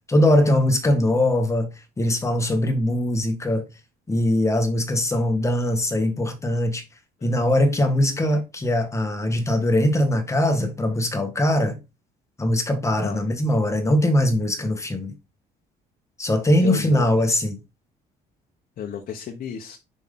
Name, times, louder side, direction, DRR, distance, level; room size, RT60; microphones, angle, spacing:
voice 1, 0.1-3.7 4.1-6.8 7.2-11.8 12.4-15.1 16.2-17.6, left 1 dB, 15° left, 1.6 m, -21 dB
voice 2, 16.6-17.4 18.8-19.8, left 7 dB, 55° left, 1.1 m, -32 dB
6.0 x 5.3 x 3.8 m
cardioid pair, 110°, 17 cm